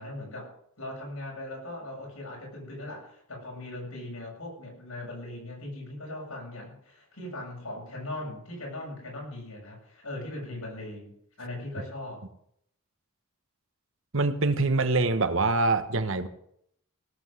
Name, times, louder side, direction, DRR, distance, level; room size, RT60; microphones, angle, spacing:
voice 1, 0.0-11.1 11.4-12.3, left 1 dB, 90° left, -1 dB, 7.6 m, -39 dB
voice 2, 14.1-16.3, right 3 dB, 65° right, 10 dB, 1.3 m, -24 dB
17.5 x 8.0 x 7.8 m, 0.70 s
head